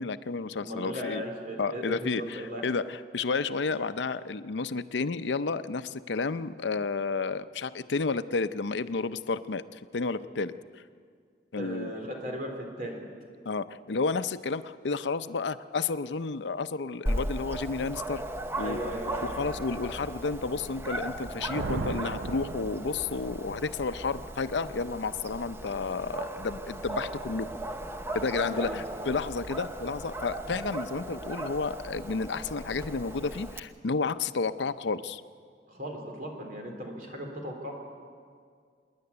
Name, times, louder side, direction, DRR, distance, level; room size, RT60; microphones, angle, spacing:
voice 1, 0.0-1.2 1.6-10.5 11.5-11.9 13.4-18.2 18.5-18.8 19.0-27.5 28.1-35.2, left 4 dB, 80° left, 13 dB, 0.6 m, -31 dB
voice 2, 0.6-2.6 11.6-12.5 12.8-13.0 18.6-19.3 28.3-28.8 35.7-37.7, equal, 50° right, 2 dB, 3.7 m, -37 dB
Dog, 17.1-33.6, right 1 dB, 15° right, 0.8 m, -37 dB
Thunder, 21.2-23.5, right 3 dB, 80° right, 0.6 m, -37 dB
26.0 x 10.5 x 9.8 m, 2.1 s
head